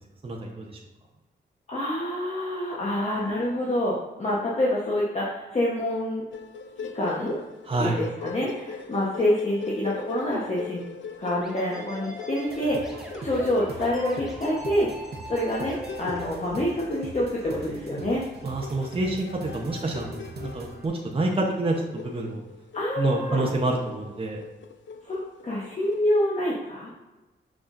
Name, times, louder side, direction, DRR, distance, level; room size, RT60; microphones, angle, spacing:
voice 1, 0.2-0.7 7.7-8.0 18.4-22.4 23.0-24.4, right 2 dB, 30° right, -1 dB, 0.9 m, -27 dB
voice 2, 1.7-6.2 6.9-7.4 7.8-10.8 11.2-14.9 15.3-18.2 22.7-23.4 25.0-26.9, left 1 dB, 35° left, -5 dB, 1.1 m, -27 dB
sound 1, 6.3-26.1, left 5 dB, 90° left, 0.5 m, -41 dB
sound 2, 11.3-16.3, right 1 dB, ahead, 1.1 m, -40 dB
sound 3, 12.5-20.9, right 3 dB, 60° right, 0.9 m, -42 dB
6.3 x 5.9 x 2.6 m, 1.1 s
wide cardioid pair, 105°, 19 cm